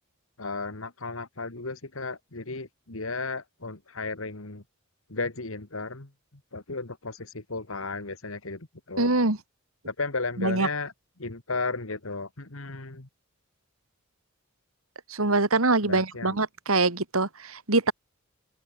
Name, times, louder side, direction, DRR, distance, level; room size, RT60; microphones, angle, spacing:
voice 1, 0.4-4.6 5.1-6.1 6.5-9.1 9.9-10.9 11.2-13.1 15.8-16.4, left 3 dB, 70° left, 2.1 m, -34 dB
voice 2, 9.0-9.4 10.4-10.7 15.1-17.9, right 2 dB, 80° right, 2.8 m, -24 dB
head